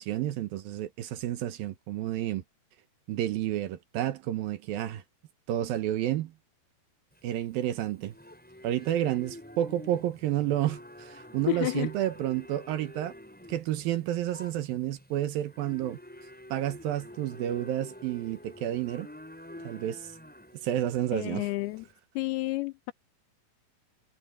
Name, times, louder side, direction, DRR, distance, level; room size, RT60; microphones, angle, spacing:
voice 1, 0.0-2.4 3.1-5.0 5.5-6.3 7.2-8.1 8.6-13.1 13.5-16.0 16.5-19.1 19.6-20.1 20.6-21.5, right 12 dB, 70° right, 2.4 m, -30 dB
Livestock farm animals working animals, 7.1-21.9, left 1 dB, ahead, 5.6 m, -48 dB
voice 2, 11.5-11.9 21.1-21.9 22.2-22.9, left 22 dB, 80° left, 2.3 m, -30 dB
omnidirectional pair, 5.0 m